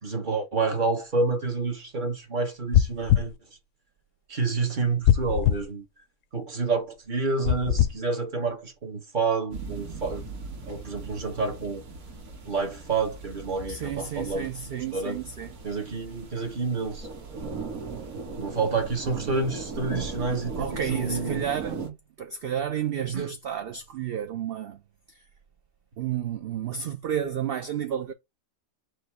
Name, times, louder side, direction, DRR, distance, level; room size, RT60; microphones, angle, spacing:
voice 1, 0.0-3.3 4.3-5.8 6.3-10.2 10.7-11.8 12.4-14.5 14.9-15.2 15.6-17.1 18.1-21.4 23.1-23.3, right 4 dB, 40° right, 1.0 m, -29 dB
sound 1, 2.7-3.3 5.0-5.6 7.4-7.9, left 11 dB, 70° left, 0.9 m, -21 dB
sound 2, 9.5-21.9, right 4 dB, 90° right, 1.7 m, -38 dB
voice 2, 13.7-15.6 19.1-19.3 20.3-24.8 25.1-25.2 26.0-28.1, right 9 dB, 65° right, 0.6 m, -32 dB
4.6 x 2.6 x 4.3 m
omnidirectional pair, 1.5 m